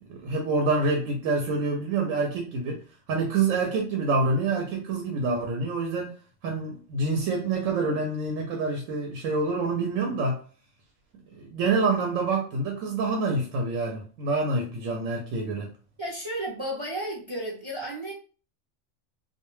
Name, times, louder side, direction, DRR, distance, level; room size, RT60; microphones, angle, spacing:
voice 1, 0.0-2.8 3.1-6.1 6.4-10.4 11.3-15.7, right 3 dB, 90° right, 1.0 m, -27 dB
voice 2, 16.0-18.1, right 1 dB, 45° right, 0.4 m, -33 dB
2.3 x 2.1 x 3.0 m
omnidirectional pair, 1.3 m